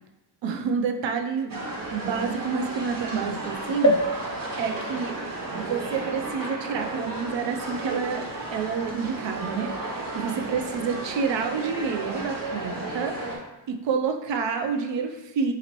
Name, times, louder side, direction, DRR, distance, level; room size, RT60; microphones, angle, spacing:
voice 1, 0.4-5.2 5.5-15.5, right 5 dB, 80° right, 6 dB, 0.5 m, -29 dB
sound 1, 1.5-13.4, right 2 dB, 50° right, 0.9 m, -34 dB
sound 2, 3.8-7.5 8.1-8.2 8.4-8.5, equal, 40° left, 0.7 m, -29 dB
3.9 x 2.8 x 3.0 m, 0.99 s
cardioid pair, 65°, 44 cm